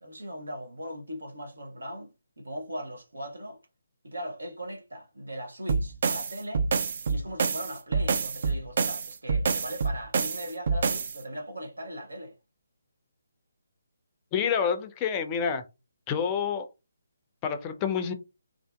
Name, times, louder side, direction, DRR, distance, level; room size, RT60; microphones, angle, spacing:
voice 1, 0.0-2.1 2.4-3.6 4.0-6.7 7.1-12.3, equal, 75° right, 0.7 m, -39 dB
sound 1, 5.7-11.2, right 5 dB, 50° right, 0.3 m, -27 dB
voice 2, 14.3-15.6 16.1-16.7 17.4-18.1, left 7 dB, 20° left, 0.4 m, -28 dB
2.5 x 2.4 x 2.3 m
figure-of-eight pair, 145°, 0 cm